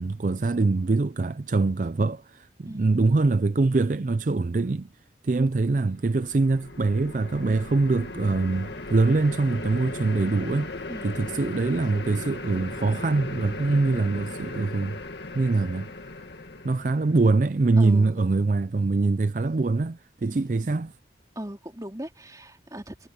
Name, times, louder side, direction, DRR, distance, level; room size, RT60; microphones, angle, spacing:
voice 1, 0.0-4.9 5.2-10.7 11.0-15.0 15.3-15.9 16.6-20.9, right 3 dB, 45° right, 0.4 m, -24 dB
voice 2, 2.7-3.0 10.9-11.3 17.8-18.3 20.2-20.9 21.3-23.1, right 1 dB, 20° right, 3.4 m, -40 dB
sound 1, 5.9-17.3, left 2 dB, 70° left, 2.0 m, -37 dB
head